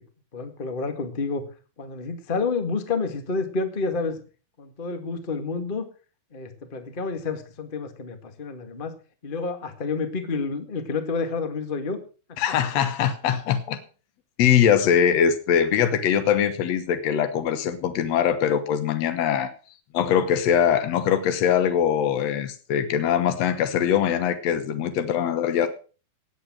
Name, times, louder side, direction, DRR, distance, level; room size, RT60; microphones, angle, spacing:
voice 1, 0.3-1.4 1.8-4.2 4.6-5.9 6.3-8.9 9.2-12.0, left 4 dB, 35° left, 8 dB, 0.8 m, -29 dB
voice 2, 12.4-13.8 14.4-19.5 19.9-25.7, left 8 dB, 70° left, 9 dB, 1.6 m, -22 dB
18.5 x 8.3 x 6.1 m, 0.37 s
omnidirectional pair, 4.5 m